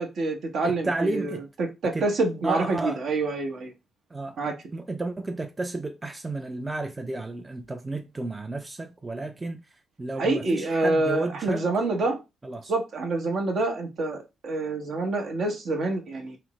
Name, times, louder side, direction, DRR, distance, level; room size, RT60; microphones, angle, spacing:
voice 1, 0.0-3.7 4.4-4.5 10.2-12.2 12.7-16.4, right 2 dB, 65° right, 0.7 m, -27 dB
voice 2, 0.6-1.4 1.9-2.1 2.4-3.0 4.1-4.4 4.7-9.6 10.0-11.6 12.4-12.7, right 2 dB, 25° right, 0.4 m, -32 dB
3.3 x 2.0 x 2.9 m
hypercardioid pair, 45°, 0 cm